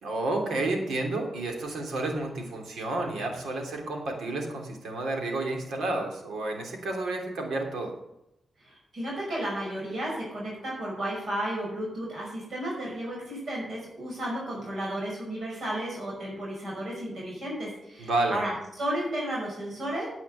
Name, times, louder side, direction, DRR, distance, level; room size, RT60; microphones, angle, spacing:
voice 1, 0.0-7.9 18.0-18.4, right 2 dB, 90° right, 2 dB, 3.1 m, -30 dB
voice 2, 8.6-20.1, right 1 dB, 60° right, -4 dB, 5.7 m, -33 dB
9.9 x 8.2 x 7.8 m, 0.84 s
cardioid pair, 105°, 0 cm